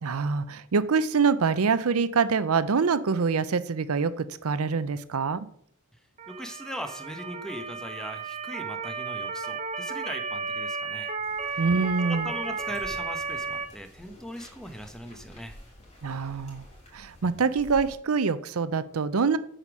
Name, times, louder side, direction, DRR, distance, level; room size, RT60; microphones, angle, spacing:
voice 1, 0.0-5.5 11.6-12.3 16.0-16.6 16.9-19.4, right 5 dB, 85° right, 14 dB, 0.6 m, -25 dB
Motor vehicle (road) / Siren, 6.2-13.7, right 4 dB, 30° right, 0.9 m, -33 dB
voice 2, 6.3-11.1 11.5-11.6 12.1-15.6, equal, 5° left, 7 dB, 0.9 m, -39 dB
sound 1, 11.2-17.9, left 1 dB, 30° left, 3.4 m, -50 dB
8.3 x 5.1 x 6.1 m, 0.64 s
head